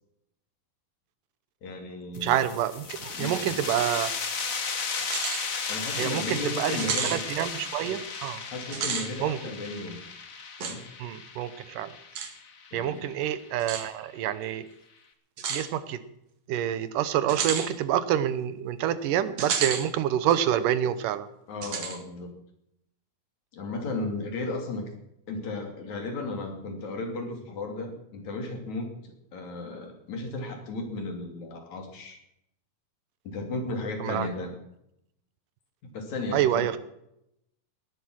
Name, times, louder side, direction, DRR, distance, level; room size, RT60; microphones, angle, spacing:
voice 1, 1.6-2.4 3.1-3.5 5.7-7.2 8.5-10.0 10.6-10.9 12.7-13.0 21.5-22.3 23.5-24.9 25.3-32.2 33.2-34.6 35.8-36.7, left 2 dB, 65° left, 3 dB, 4.1 m, -35 dB
sound 1, 2.1-13.5, left 5 dB, 40° left, 1.2 m, -35 dB
voice 2, 2.2-4.1 6.0-6.8 7.0-8.4 9.2-9.4 11.0-11.9 12.7-14.7 15.5-16.0 16.5-21.3 34.0-34.3 36.3-36.8, right 11 dB, 90° right, 14 dB, 2.6 m, -27 dB
sound 2, 5.0-5.5 5.9-6.0 6.8-7.2 8.6-9.1 10.6-10.8 12.2-12.3 13.6-13.9 15.4-15.7 17.3-17.7 19.4-19.9 20.3-20.4 21.6-22.0, right 7 dB, 60° right, 2.9 m, -30 dB
18.5 x 11.5 x 6.3 m, 0.80 s
omnidirectional pair, 3.7 m